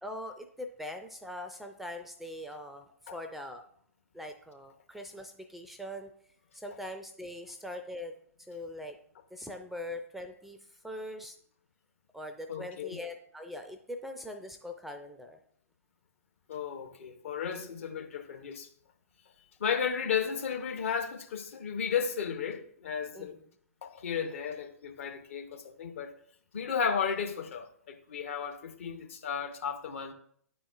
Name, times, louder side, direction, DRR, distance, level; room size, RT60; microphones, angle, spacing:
voice 1, 0.0-3.6 4.1-6.1 6.5-8.1 8.5-9.0 9.3-10.6 10.8-11.4 12.1-15.4 17.6-17.7 23.1-23.4, left 1 dB, ahead, 0.4 m, -42 dB
voice 2, 12.5-13.0 16.5-18.7 19.6-23.4 23.8-26.1 26.5-30.1, left 7 dB, 55° left, 0.8 m, -34 dB
10.0 x 4.2 x 2.4 m
figure-of-eight pair, 115°, 8 cm